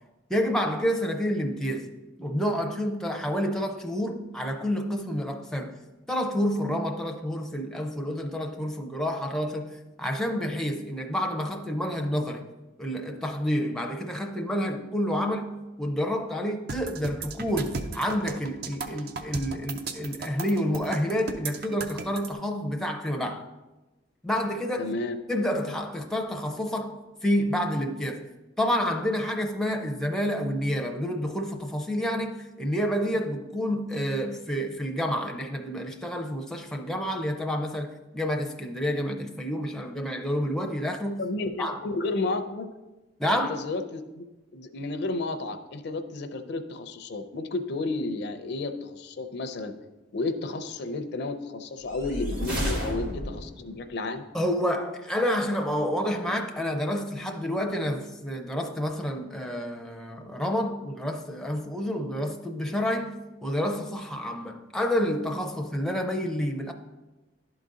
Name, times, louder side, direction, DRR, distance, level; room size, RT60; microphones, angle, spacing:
voice 1, 0.3-1.9 2.2-5.8 6.1-12.4 12.8-15.5 15.8-23.4 24.2-24.9 25.3-28.3 28.6-41.2 41.6-41.8 43.2-43.6 54.3-63.1 63.4-66.7, equal, 5° left, 0.5 m, -29 dB
sound 1, 16.7-22.3, right 4 dB, 55° right, 0.5 m, -35 dB
voice 2, 24.8-25.2 41.2-42.7 43.3-44.3 44.5-49.7 50.1-54.2, left 2 dB, 60° left, 0.5 m, -32 dB
sound 2, 51.8-53.6, equal, 90° right, 2.2 m, -31 dB
11.0 x 3.9 x 3.7 m
head